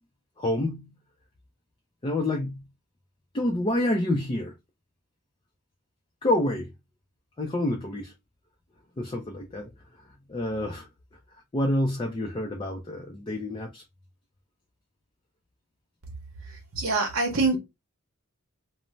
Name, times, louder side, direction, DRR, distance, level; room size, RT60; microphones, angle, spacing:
voice 1, 0.4-0.9 2.0-2.6 3.3-4.5 6.2-6.7 7.4-8.1 9.0-10.0 10.3-10.9 11.5-13.8, left 1 dB, 25° left, 0.4 m, -28 dB
voice 2, 16.7-17.6, right 3 dB, 70° right, 0.8 m, -24 dB
2.6 x 2.0 x 3.0 m
head